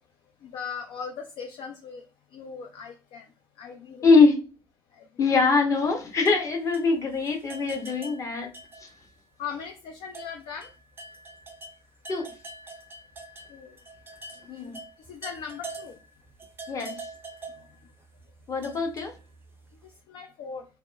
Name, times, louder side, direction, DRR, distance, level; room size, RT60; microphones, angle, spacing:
voice 1, 0.4-3.3 3.6-4.1 4.9-5.1 9.4-10.7 13.5-13.8 14.4-14.7 15.0-16.0 17.6-17.7 19.8-20.7, left 6 dB, 45° left, 0.4 m, -39 dB
voice 2, 4.0-4.4 5.2-8.5 8.8-8.9 12.1-12.3 14.5-14.7 16.7-16.9 18.5-19.1, left 4 dB, 30° left, 0.8 m, -22 dB
sound 1, 5.7-9.2 9.5-9.6 10.1-19.7, right 2 dB, 20° right, 0.5 m, -45 dB
2.8 x 2.0 x 2.3 m
figure-of-eight pair, 60°, 11 cm